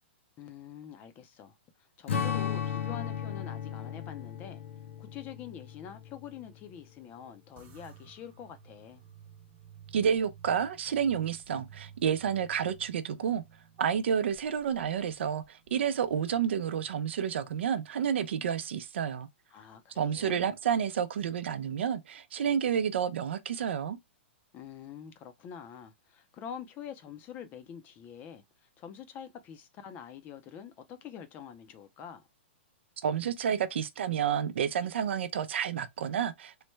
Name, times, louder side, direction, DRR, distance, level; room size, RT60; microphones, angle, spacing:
voice 1, 0.4-4.6 5.0-9.0 19.5-20.5 24.5-32.3, left 8 dB, 25° left, 0.5 m, -46 dB
Strum, 2.1-6.7, left 7 dB, 75° left, 0.7 m, -35 dB
sound 1, 7.6-18.2, right 8 dB, 25° right, 0.7 m, -55 dB
voice 2, 9.9-13.4 13.8-19.3 20.0-24.0 33.0-36.6, right 8 dB, 75° right, 0.5 m, -30 dB
3.1 x 2.1 x 3.1 m
hypercardioid pair, 140°, 6 cm